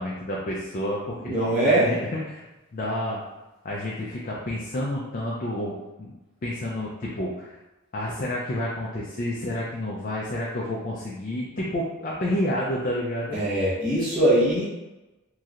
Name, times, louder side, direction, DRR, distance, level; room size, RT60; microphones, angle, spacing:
voice 1, 0.0-2.4 2.7-3.2 3.6-6.1 6.4-7.5 7.9-13.4, left 1 dB, 35° left, -4 dB, 0.3 m, -29 dB
voice 2, 1.2-1.9 13.3-14.6, right 1 dB, 10° right, -15 dB, 1.1 m, -22 dB
3.1 x 2.7 x 2.4 m, 1.1 s
head